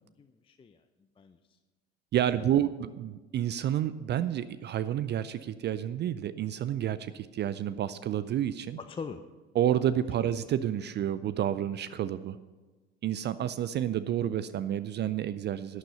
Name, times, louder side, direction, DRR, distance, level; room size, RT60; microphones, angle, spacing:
voice 1, 0.2-0.8 1.2-1.6 2.3-2.7 8.8-9.2 10.2-10.3, left 5 dB, 15° left, 8 dB, 0.6 m, -43 dB
voice 2, 2.1-8.8 9.5-12.4 13.0-15.8, right 10 dB, 35° right, 15 dB, 0.5 m, -30 dB
11.5 x 9.7 x 5.5 m, 1.3 s
hypercardioid pair, 70°, 32 cm